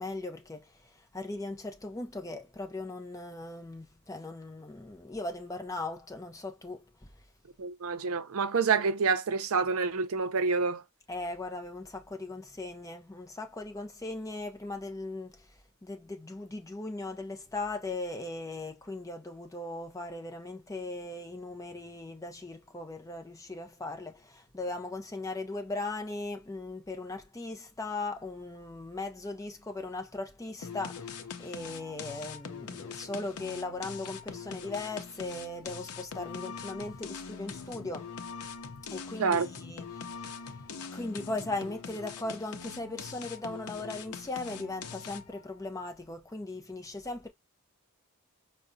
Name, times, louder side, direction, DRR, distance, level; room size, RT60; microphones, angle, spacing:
voice 1, 0.0-7.1 11.1-15.5 15.8-38.1 38.9-47.3, left 2 dB, 15° left, 0.5 m, -38 dB
voice 2, 7.6-10.8 39.2-39.5, right 5 dB, 70° right, 0.5 m, -27 dB
sound 1, 30.6-45.4, left 6 dB, 80° left, 0.6 m, -43 dB
4.8 x 2.1 x 2.6 m
head